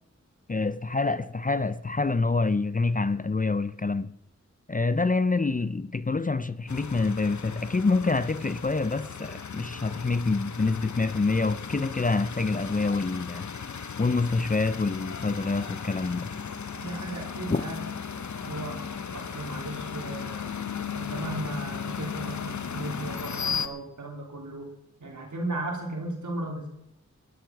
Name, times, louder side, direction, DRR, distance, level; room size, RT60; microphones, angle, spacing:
voice 1, 0.5-4.1 4.7-13.5 14.0-16.3 17.5-17.6, left 3 dB, 30° left, 0.5 m, -26 dB
sound 1, 6.7-23.7, left 6 dB, 75° left, 0.9 m, -36 dB
voice 2, 16.8-17.8 18.4-18.9 19.1-20.5 20.9-24.7 25.0-26.7, right 2 dB, 90° right, 3.5 m, -35 dB
14.0 x 12.5 x 5.9 m
wide cardioid pair, 50°, 29 cm